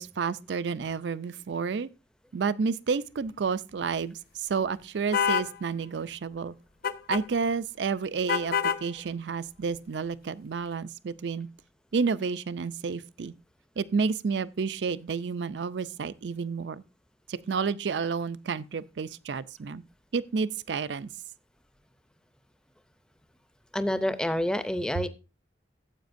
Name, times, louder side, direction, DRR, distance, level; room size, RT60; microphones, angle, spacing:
voice 1, 0.0-1.9 2.3-6.5 7.1-8.5 8.8-11.5 11.9-13.3 13.8-16.8 17.3-19.8 20.1-21.1, right 5 dB, 75° right, 0.4 m, -30 dB
sound 1, 5.1-5.5 6.8-7.2 8.3-8.8, left 7 dB, 55° left, 0.6 m, -26 dB
voice 2, 23.7-25.1, left 1 dB, 5° left, 0.5 m, -28 dB
14.5 x 8.1 x 2.6 m
head